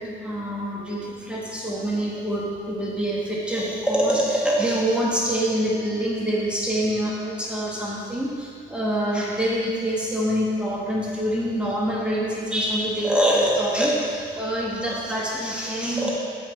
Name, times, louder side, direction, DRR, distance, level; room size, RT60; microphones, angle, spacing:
voice 1, 0.0-16.1, right 1 dB, 5° right, -5 dB, 1.6 m, -25 dB
6.3 x 5.9 x 4.6 m, 2.2 s
cardioid pair, 90°, 20 cm